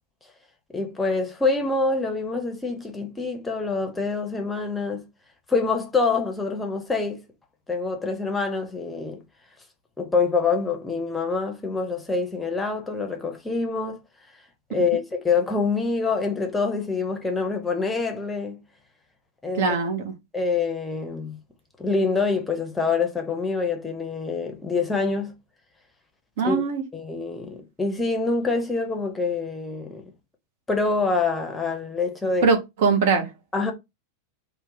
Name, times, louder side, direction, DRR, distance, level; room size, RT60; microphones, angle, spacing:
voice 1, 0.7-5.0 5.5-7.2 7.7-9.2 10.0-14.0 14.7-18.6 19.4-19.8 20.3-21.4 21.8-25.3 26.4-26.6 26.9-30.1 30.7-32.5 33.5-33.7, left 4 dB, 10° left, 0.7 m, -26 dB
voice 2, 19.6-20.1 26.4-26.8 32.4-33.3, right 5 dB, 55° right, 0.7 m, -21 dB
2.6 x 2.1 x 3.9 m
figure-of-eight pair, 90°, 0 cm